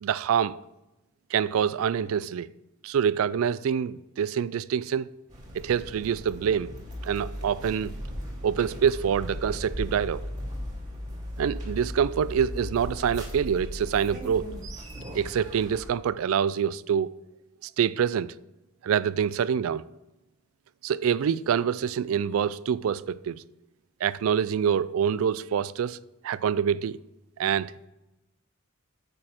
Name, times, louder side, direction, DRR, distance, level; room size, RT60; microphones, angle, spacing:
voice 1, 0.0-0.6 1.3-2.5 2.8-5.1 5.5-6.7 7.0-7.9 8.4-10.2 11.4-14.5 15.1-17.1 17.8-18.3 18.8-19.8 20.8-23.4 24.0-26.0 26.2-27.0 27.4-27.7, right 8 dB, 75° right, 0.3 m, -26 dB
sound 1, 5.3-15.9, equal, 35° right, 2.2 m, -37 dB
8.9 x 6.4 x 4.4 m
head